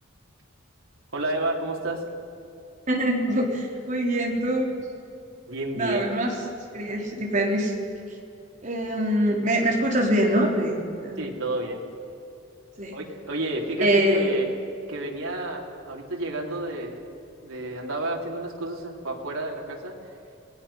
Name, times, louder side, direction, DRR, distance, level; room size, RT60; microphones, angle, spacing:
voice 1, 1.1-2.0 5.5-6.1 11.2-11.8 12.9-14.5 14.9-17.0 17.4-20.1, right 1 dB, 90° right, 0 dB, 3.4 m, -30 dB
voice 2, 2.9-4.7 5.8-6.3 6.7-7.7 8.6-11.3 12.8-13.0 13.8-14.3, right 1 dB, 35° right, -1 dB, 3.8 m, -24 dB
27.0 x 19.5 x 5.7 m, 2.7 s
head